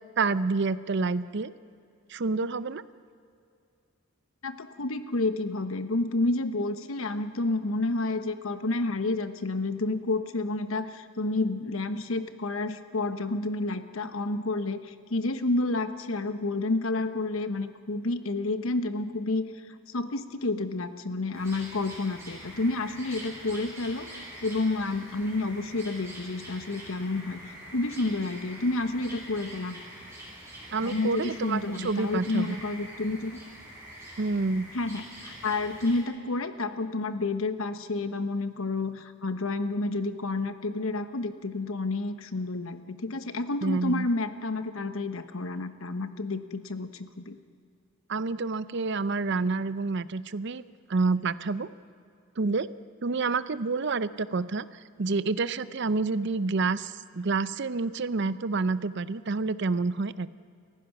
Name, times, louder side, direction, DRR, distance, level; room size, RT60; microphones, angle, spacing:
voice 1, 0.2-1.5 2.1-2.8 30.7-32.6 34.2-34.7 43.6-44.1 48.1-50.6 50.9-51.7 52.4-52.7 53.0-54.7 55.0-60.3, right 3 dB, 55° right, 15 dB, 0.6 m, -28 dB
voice 2, 4.4-19.4 19.9-29.8 30.8-33.3 34.7-47.4, left 2 dB, 80° left, 10 dB, 1.1 m, -30 dB
sound 1, 21.3-36.0, right 1 dB, 15° right, 7.5 m, -45 dB
29.5 x 15.5 x 6.0 m, 2.4 s
head